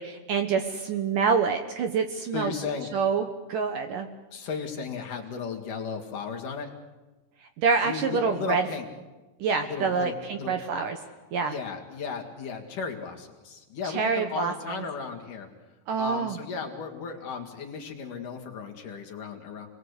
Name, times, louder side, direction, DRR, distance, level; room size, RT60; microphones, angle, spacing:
voice 1, 0.0-2.5 2.9-4.1 7.6-8.7 9.4-11.0 11.3-11.5 13.8-14.8 15.9-16.4, right 5 dB, 65° right, 6 dB, 2.4 m, -26 dB
voice 2, 2.3-2.9 4.3-6.7 7.8-8.9 9.6-10.5 11.4-15.5 16.0-19.7, left 5 dB, 55° left, 1 dB, 3.3 m, -35 dB
29.5 x 21.0 x 8.2 m, 1.2 s
omnidirectional pair, 4.9 m